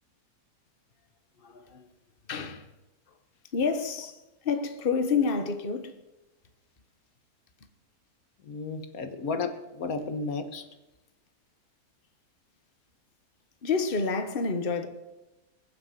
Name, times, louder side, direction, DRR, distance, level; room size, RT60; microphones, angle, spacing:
voice 1, 1.4-1.9 2.3-2.7 3.5-6.0 13.6-14.9, left 5 dB, 40° left, 1.4 m, -29 dB
voice 2, 8.5-10.6, left 4 dB, 75° left, 1.6 m, -33 dB
21.5 x 7.6 x 7.7 m
omnidirectional pair, 1.5 m